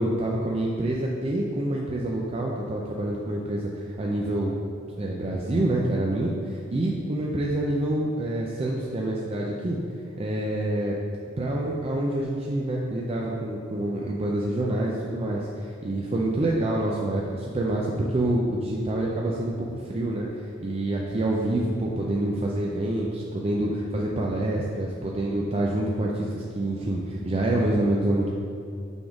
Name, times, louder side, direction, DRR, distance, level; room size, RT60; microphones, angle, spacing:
voice 1, 0.0-4.6 5.0-9.8 10.2-10.9 11.4-28.3, right 1 dB, 30° right, -3 dB, 0.4 m, -27 dB
6.1 x 3.6 x 4.8 m, 2.4 s
head